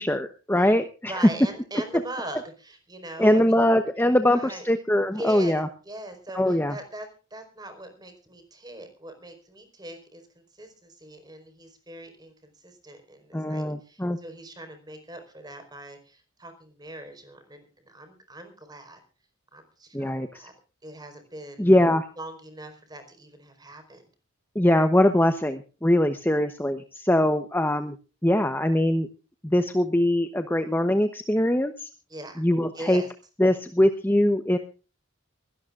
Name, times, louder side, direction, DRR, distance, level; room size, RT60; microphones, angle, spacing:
voice 1, 0.0-1.1 3.2-5.7 6.3-6.7 13.3-14.2 19.9-20.5 21.6-22.0 24.5-28.0 28.2-29.1 29.4-31.9 32.4-33.0 33.4-34.6, left 1 dB, 10° left, 8 dB, 0.9 m, -22 dB
voice 2, 1.0-3.7 4.2-4.6 5.1-19.0 19.5-20.5 20.8-21.7 22.2-24.0 32.1-32.4 32.7-33.1, right 1 dB, 20° right, 7 dB, 4.6 m, -41 dB
23.5 x 17.5 x 2.5 m, 0.36 s
head